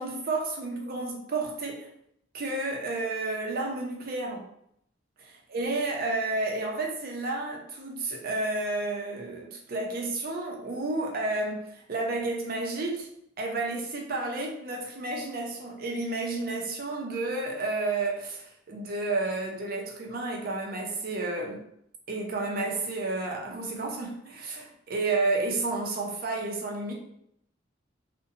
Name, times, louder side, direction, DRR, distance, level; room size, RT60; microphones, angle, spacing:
voice 1, 0.0-1.9 2.3-4.5 5.2-13.1 13.4-21.6 22.1-26.9, right 2 dB, 50° right, 0 dB, 0.5 m, -31 dB
2.5 x 2.1 x 2.7 m, 0.73 s
head